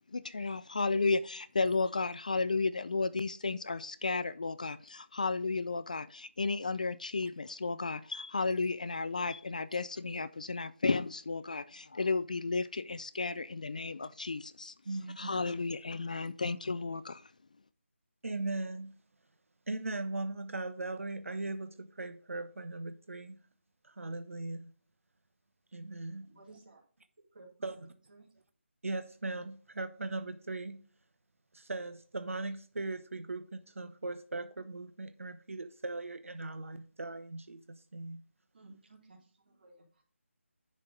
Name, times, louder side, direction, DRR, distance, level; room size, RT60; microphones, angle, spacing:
voice 1, 0.1-14.7 15.2-17.3, left 3 dB, 35° left, 0.3 m, -33 dB
voice 2, 14.8-15.3 18.2-18.9 19.7-23.4 23.8-24.7 25.7-26.3 27.6-27.9 28.8-30.8 31.5-38.2, right 2 dB, 75° right, 0.9 m, -39 dB
voice 3, 26.2-26.8 27.3-27.8 28.1-28.3 38.5-40.0, right 2 dB, 40° right, 3.2 m, -57 dB
10.5 x 4.3 x 5.0 m
figure-of-eight pair, 170°, 7 cm